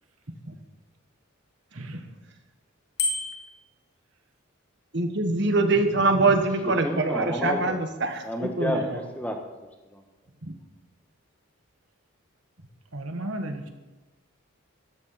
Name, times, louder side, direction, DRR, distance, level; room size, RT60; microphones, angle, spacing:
Bicycle bell, 3.0-3.6, left 3 dB, 90° left, 2.5 m, -28 dB
voice 1, 4.9-9.0 10.4-10.5, right 3 dB, 55° right, 6 dB, 1.4 m, -24 dB
voice 2, 6.8-7.8 8.2-10.0, equal, 5° left, 3 dB, 1.3 m, -31 dB
voice 3, 12.9-13.7, right 1 dB, 85° right, 5 dB, 1.5 m, -34 dB
13.0 x 9.7 x 5.7 m, 1.1 s
head